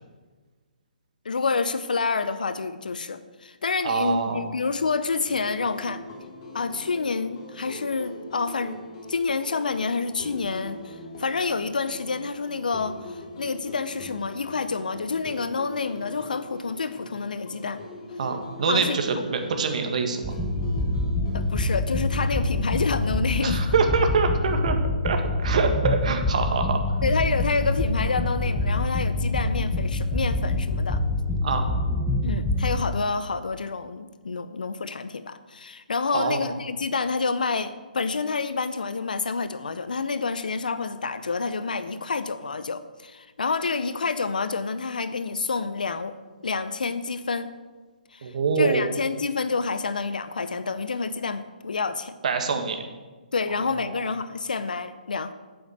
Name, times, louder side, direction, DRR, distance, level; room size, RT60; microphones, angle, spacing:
voice 1, 1.2-6.0 6.5-8.8 9.1-17.8 18.6-19.0 21.3-23.7 27.0-31.0 32.2-46.2 46.4-47.5 48.1-52.2 53.3-55.3, left 4 dB, 65° left, 12 dB, 0.8 m, -28 dB
voice 2, 3.8-4.5 18.2-20.3 23.4-24.8 25.0-26.8 31.4-31.6 36.1-36.5 48.2-48.9 52.2-52.8 53.5-54.0, right 5 dB, 50° right, 5 dB, 1.9 m, -25 dB
sound 1, 5.3-22.5, left 1 dB, 40° left, 3.0 m, -42 dB
sound 2, 20.2-32.8, left 2 dB, 5° right, 1.2 m, -25 dB
9.0 x 8.3 x 7.9 m, 1.3 s
figure-of-eight pair, 135°, 5 cm